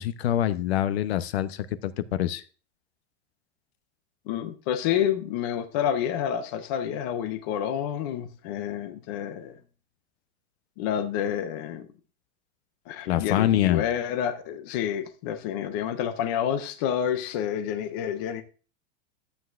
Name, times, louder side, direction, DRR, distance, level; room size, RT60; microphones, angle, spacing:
voice 1, 0.0-2.4 13.1-13.8, left 12 dB, 65° left, 0.8 m, -25 dB
voice 2, 4.3-9.6 10.8-11.9 12.9-18.4, left 9 dB, 20° left, 0.3 m, -29 dB
11.5 x 7.9 x 2.5 m
supercardioid pair, 170°, 34 cm